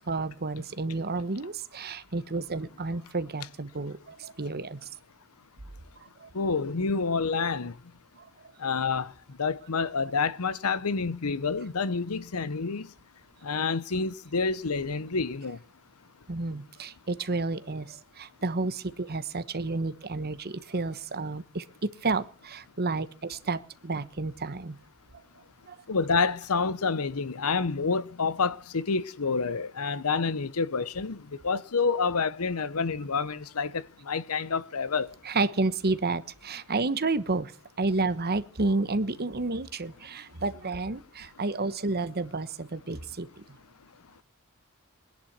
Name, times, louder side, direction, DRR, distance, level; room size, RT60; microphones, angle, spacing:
voice 1, 0.1-4.9 6.0-6.3 8.2-8.5 16.3-24.8 25.7-25.8 35.2-37.5 37.8-43.4, right 3 dB, 45° right, 1.2 m, -31 dB
voice 2, 6.3-7.8 8.6-9.1 9.4-12.9 13.4-15.6 25.9-35.1, left 4 dB, 75° left, 0.9 m, -28 dB
21.0 x 10.5 x 6.0 m
head